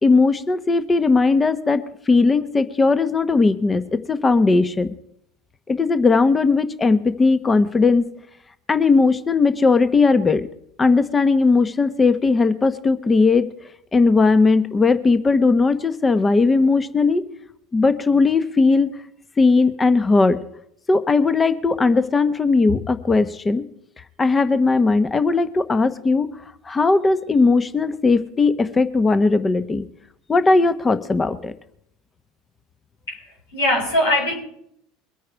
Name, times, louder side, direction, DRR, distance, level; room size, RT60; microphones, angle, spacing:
voice 1, 0.0-4.9 5.7-8.1 8.7-10.5 10.8-13.5 13.9-17.2 17.7-18.9 19.4-20.4 20.9-23.6 24.2-26.3 26.6-29.8 30.3-31.5, left 3 dB, 20° left, 12 dB, 1.1 m, -18 dB
voice 2, 33.1-34.3, left 1 dB, 85° left, -1 dB, 5.4 m, -21 dB
22.5 x 9.4 x 4.7 m, 0.73 s
hypercardioid pair, 80°, 0 cm